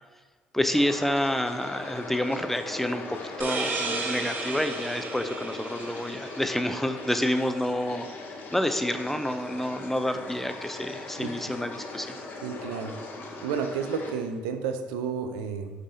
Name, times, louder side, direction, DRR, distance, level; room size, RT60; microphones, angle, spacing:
voice 1, 0.5-8.1 8.5-12.2, left 1 dB, 5° left, 8 dB, 0.4 m, -28 dB
sound 1, 0.7-14.1, left 2 dB, 55° left, 0.7 m, -39 dB
sound 2, 3.4-6.8, right 3 dB, 55° right, 0.7 m, -33 dB
voice 2, 12.4-13.0 13.4-15.8, right 6 dB, 90° right, 7 dB, 0.3 m, -31 dB
4.7 x 4.1 x 2.6 m, 1.3 s
supercardioid pair, 65°, 4 cm